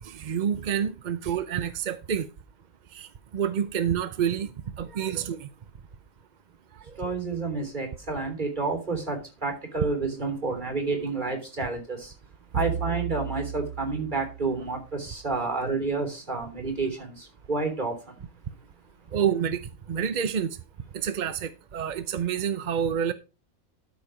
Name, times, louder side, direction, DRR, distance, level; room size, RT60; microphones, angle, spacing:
voice 1, 0.0-2.3 2.9-4.5 4.8-5.5 7.0-7.1 19.1-20.6 20.9-23.1, right 8 dB, 50° right, 0.6 m, -28 dB
voice 2, 7.0-12.1 12.5-18.1, right 3 dB, 35° right, 3.5 m, -30 dB
sound 1, 12.5-15.0, right 8 dB, 85° right, 1.8 m, -34 dB
13.0 x 5.3 x 5.0 m
omnidirectional pair, 1.5 m